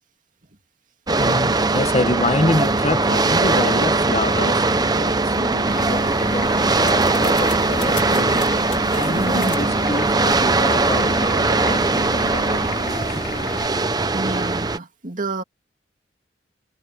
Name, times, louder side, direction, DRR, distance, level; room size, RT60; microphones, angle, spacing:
sound 1, 1.1-14.8, right 3 dB, 25° right, 0.9 m, -20 dB
voice 1, 1.2-8.5 8.9-13.1, left 2 dB, 40° left, 1.2 m, -27 dB
Vehicle / Engine, 5.7-13.7, left 3 dB, 55° left, 3.4 m, -33 dB
sound 2, 6.0-11.2, left 11 dB, 75° left, 2.4 m, -41 dB
voice 2, 9.2-9.5 14.1-15.4, right 2 dB, 50° right, 2.5 m, -29 dB
head